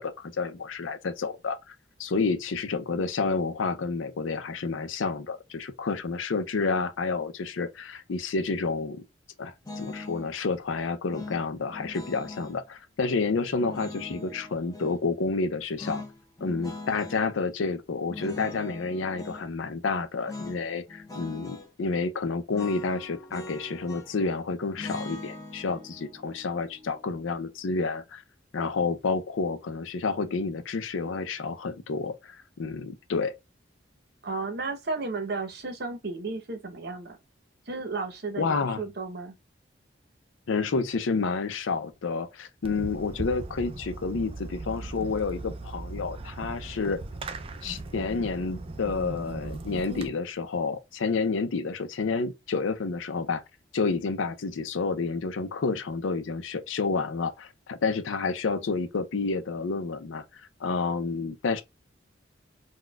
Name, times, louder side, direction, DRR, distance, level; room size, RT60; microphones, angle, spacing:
voice 1, 0.0-1.7 2.0-9.0 9.4-16.0 16.4-28.2 28.5-33.3 38.4-38.8 40.5-47.0 47.6-53.4 53.7-60.2 60.6-61.6, left 4 dB, 85° left, 0.5 m, -29 dB
sound 1, 9.6-10.3 11.1-12.6 13.6-15.0 15.8-17.3 18.1-19.4 20.2-20.6 20.9-21.7 22.5-24.3 24.8-27.8, left 2 dB, 20° left, 0.6 m, -41 dB
voice 2, 34.2-37.2 37.7-39.3, right 3 dB, 55° right, 0.8 m, -33 dB
Fireworks, 42.6-50.1, right 2 dB, 30° right, 0.3 m, -38 dB
4.0 x 2.2 x 2.2 m
head